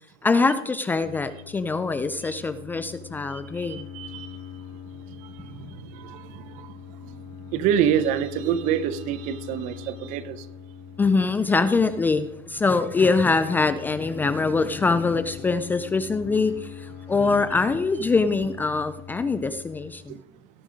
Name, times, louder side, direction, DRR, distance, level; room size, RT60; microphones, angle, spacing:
voice 1, 0.2-3.9 11.0-20.2, left 4 dB, 10° left, 12 dB, 0.4 m, -23 dB
sound 1, 1.0-19.9, left 8 dB, 50° left, 3.1 m, -42 dB
voice 2, 3.3-4.4 5.2-6.7 7.0-7.2 7.5-10.5 20.1-20.2, right 9 dB, 50° right, 14 dB, 0.9 m, -27 dB
17.5 x 6.4 x 5.1 m, 0.85 s
supercardioid pair, 150°, 17 cm